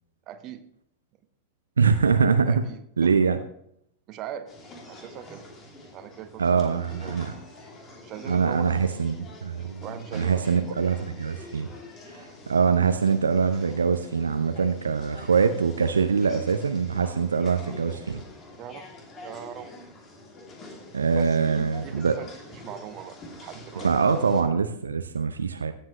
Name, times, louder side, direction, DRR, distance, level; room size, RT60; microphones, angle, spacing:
voice 1, 0.3-0.6 2.4-3.1 4.1-4.5 4.9-5.4 5.9-7.4 8.0-8.9 9.8-10.7 18.6-18.9 19.2-19.7 21.1-23.9, right 10 dB, 35° right, 9 dB, 1.1 m, -41 dB
voice 2, 1.8-2.6 3.0-3.4 6.4-7.3 8.3-9.8 10.1-11.7 12.1-18.2 20.9-22.1 23.8-25.7, right 5 dB, 75° right, 8 dB, 0.7 m, -23 dB
sound 1, 4.5-24.4, left 2 dB, 25° left, 2.7 m, -46 dB
16.5 x 7.6 x 3.1 m, 0.71 s
figure-of-eight pair, 90°, 0 cm